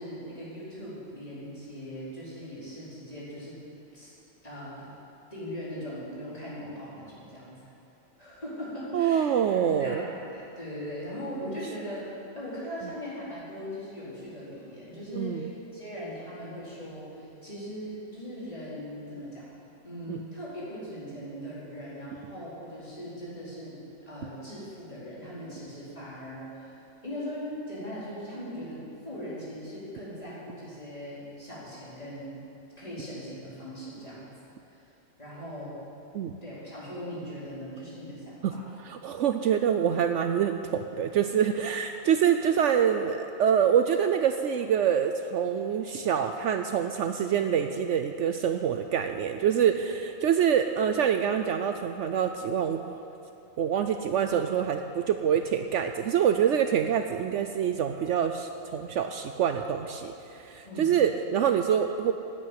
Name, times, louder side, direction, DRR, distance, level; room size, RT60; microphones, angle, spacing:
voice 1, 0.0-3.6 3.9-4.1 4.4-4.9 5.3-7.6 8.2-12.0 12.3-19.5 19.8-23.8 24.1-26.7 27.0-32.4 32.8-34.3 35.2-35.8 36.4-38.6 60.6-60.9, equal, 25° left, -9 dB, 4.6 m, -39 dB
voice 2, 8.9-10.1 15.2-15.5 20.1-20.2 36.1-36.3 38.4-38.5 38.8-53.0 53.6-62.1, right 8 dB, 70° right, 7 dB, 0.9 m, -26 dB
12.0 x 9.5 x 9.2 m, 2.9 s
omnidirectional pair, 1.4 m